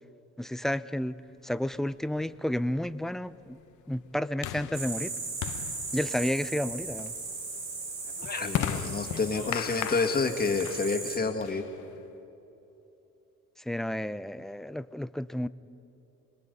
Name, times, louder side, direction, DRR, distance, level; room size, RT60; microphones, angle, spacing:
voice 1, 0.4-1.2 1.4-3.6 3.9-5.1 5.9-7.1 13.7-15.5, left 1 dB, ahead, 14 dB, 0.4 m, -31 dB
sound 1, 1.7-12.1, left 11 dB, 80° left, 0.8 m, -39 dB
sound 2, 4.7-11.2, right 3 dB, 75° right, 4.1 m, -37 dB
voice 2, 8.3-11.6, left 4 dB, 30° left, 4 dB, 2.0 m, -29 dB
27.0 x 20.5 x 5.4 m, 3.0 s
cardioid pair, 90°, 30 cm